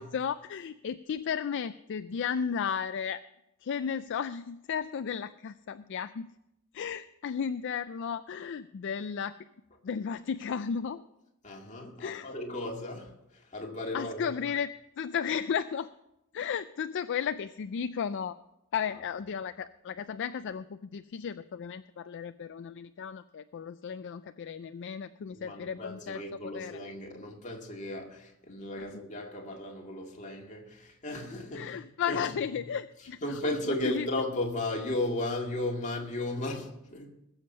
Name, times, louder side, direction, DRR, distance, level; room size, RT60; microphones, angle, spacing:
voice 1, 0.0-3.2 3.6-6.3 6.7-9.4 9.8-11.0 12.0-12.3 13.9-14.7 15.0-15.9 16.3-18.4 18.7-26.8 31.5-34.1, left 7 dB, 55° left, 0.4 m, -34 dB
voice 2, 11.4-14.3 25.3-31.7 32.1-32.4 33.0-37.1, left 1 dB, 35° left, 2.1 m, -35 dB
20.5 x 7.3 x 5.5 m
head